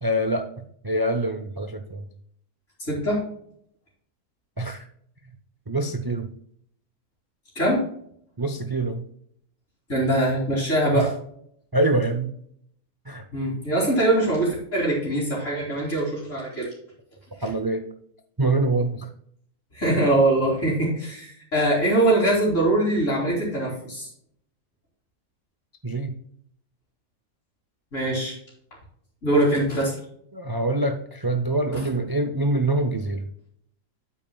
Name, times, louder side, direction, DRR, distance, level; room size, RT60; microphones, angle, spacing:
voice 1, 0.0-0.5 0.8-2.0 4.6-4.8 5.7-6.3 8.4-9.0 10.9-11.1 11.7-12.3 13.1-13.2 17.4-17.8 18.4-19.1 25.8-26.2 30.3-33.2, right 2 dB, 35° right, 6 dB, 0.3 m, -25 dB
voice 2, 2.9-3.2 7.5-7.8 9.9-11.1 13.3-16.7 17.4-17.5 19.7-24.1 27.9-28.3 29.2-29.9 31.7-31.9, right 1 dB, 55° left, -8 dB, 3.0 m, -22 dB
9.0 x 8.4 x 2.3 m, 0.67 s
omnidirectional pair, 1.5 m